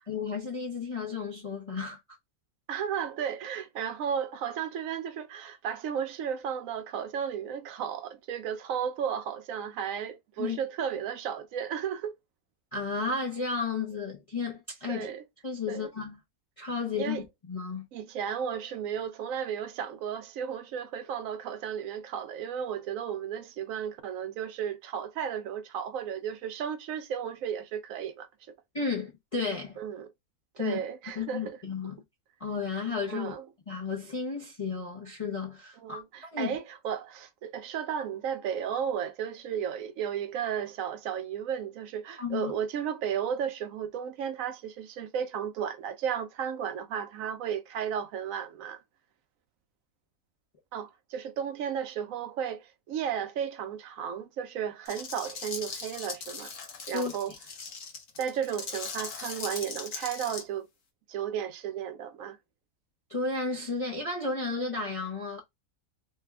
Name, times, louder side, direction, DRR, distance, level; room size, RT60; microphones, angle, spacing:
voice 1, 0.1-2.0 10.4-10.6 12.7-15.1 15.4-16.2 16.6-17.2 17.5-17.9 28.7-29.8 30.6-30.8 31.2-32.0 32.4-33.3 33.7-36.0 36.3-36.6 42.2-42.5 56.9-57.1 63.1-65.4, left 4 dB, 40° left, 0.5 m, -33 dB
voice 2, 2.7-12.2 14.9-15.2 15.7-15.9 16.9-17.2 17.9-28.3 29.8-30.1 30.6-31.6 33.1-33.4 35.8-48.8 50.7-56.5 56.9-57.3 58.2-60.7 61.1-62.4, right 8 dB, 70° right, 0.9 m, -34 dB
sound 1, 54.9-60.4, left 5 dB, 60° left, 1.1 m, -39 dB
3.3 x 2.2 x 3.3 m
omnidirectional pair, 1.6 m